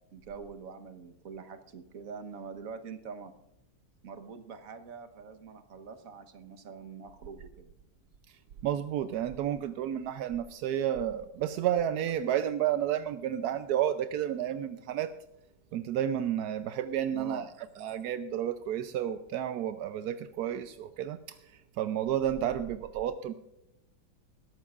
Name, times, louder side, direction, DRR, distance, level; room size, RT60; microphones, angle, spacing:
voice 1, 0.1-3.3 4.0-7.7 17.1-17.5, right 5 dB, 50° right, 8 dB, 1.3 m, -44 dB
voice 2, 8.6-15.1 15.7-17.4 17.8-23.3, right 10 dB, 75° right, 10 dB, 0.9 m, -31 dB
21.5 x 12.5 x 2.4 m, 0.87 s
omnidirectional pair, 2.2 m